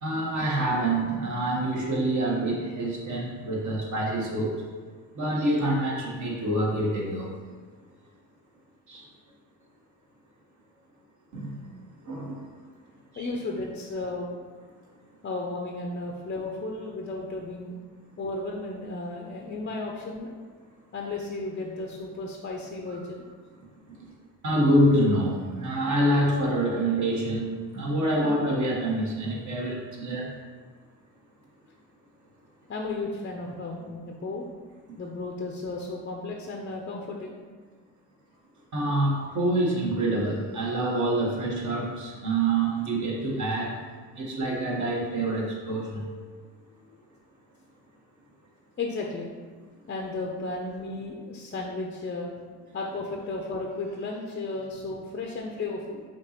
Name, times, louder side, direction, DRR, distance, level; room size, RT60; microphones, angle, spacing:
voice 1, 0.0-4.6 5.1-7.3 8.9-9.0 11.3-12.4 13.1-13.3 24.4-30.3 38.7-43.8 44.1-46.1, right 1 dB, 45° right, -2 dB, 1.3 m, -26 dB
voice 2, 13.2-14.4 15.2-17.7 18.2-20.4 20.9-23.3 32.7-34.5 35.0-37.3 46.8-47.0 48.8-49.3 49.9-52.3 52.7-56.0, left 2 dB, 30° left, 0 dB, 0.5 m, -34 dB
5.0 x 3.0 x 2.9 m, 1.5 s
supercardioid pair, 60°, 41 cm